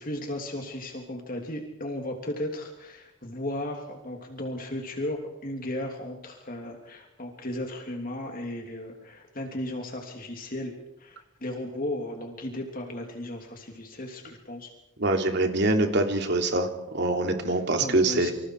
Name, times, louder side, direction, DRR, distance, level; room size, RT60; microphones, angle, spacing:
voice 1, 0.0-14.7 17.4-18.3, left 1 dB, 40° left, 2 dB, 3.2 m, -35 dB
voice 2, 15.0-16.7 16.9-18.3, right 2 dB, 55° right, 5 dB, 3.2 m, -24 dB
28.5 x 26.5 x 4.9 m, 0.88 s
head